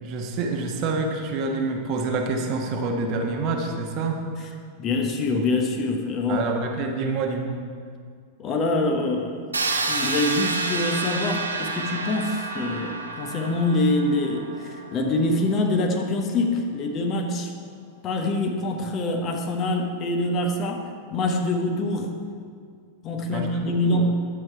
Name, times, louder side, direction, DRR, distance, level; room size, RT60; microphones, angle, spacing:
voice 1, 0.0-4.2 6.3-7.6 23.3-23.5 23.8-24.0, right 3 dB, 40° right, 3 dB, 1.2 m, -27 dB
voice 2, 4.8-6.5 8.4-9.5 9.9-17.5 18.0-22.1 23.0-24.2, left 2 dB, 30° left, 3 dB, 1.1 m, -25 dB
sound 1, 9.5-15.3, right 3 dB, 75° right, 0.8 m, -29 dB
11.0 x 7.4 x 4.6 m, 2.1 s
figure-of-eight pair, 90°, 0 cm